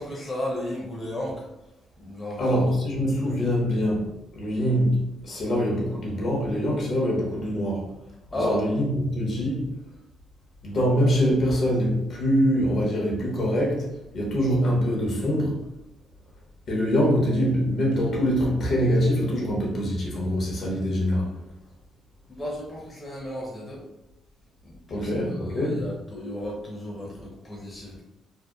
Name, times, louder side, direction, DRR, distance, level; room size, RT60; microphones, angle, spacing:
voice 1, 0.0-1.5 2.0-2.7 8.3-8.7 22.3-23.8 24.6-28.0, left 1 dB, 25° left, -3 dB, 0.7 m, -34 dB
voice 2, 2.4-4.0 4.3-7.8 8.3-9.6 10.6-13.8 14.1-15.6 16.7-21.3 24.9-25.8, equal, 60° left, -3 dB, 0.8 m, -24 dB
2.7 x 2.1 x 2.3 m, 0.92 s
cardioid pair, 90°, 0 cm